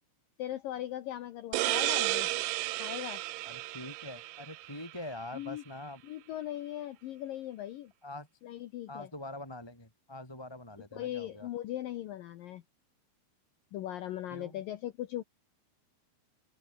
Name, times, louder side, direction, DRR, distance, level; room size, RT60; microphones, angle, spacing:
voice 1, 0.4-2.3 2.8-3.2 5.3-5.6 6.0-7.9 8.4-9.1 10.9-12.6 13.7-15.2, left 13 dB, 90° left, 1.9 m, -39 dB
sound 1, 1.5-5.0, right 19 dB, 90° right, 3.2 m, -33 dB
voice 2, 3.4-6.0 8.0-8.3 8.9-11.5 14.3-14.6, left 1 dB, 5° left, 3.6 m, -44 dB
omnidirectional pair, 5.5 m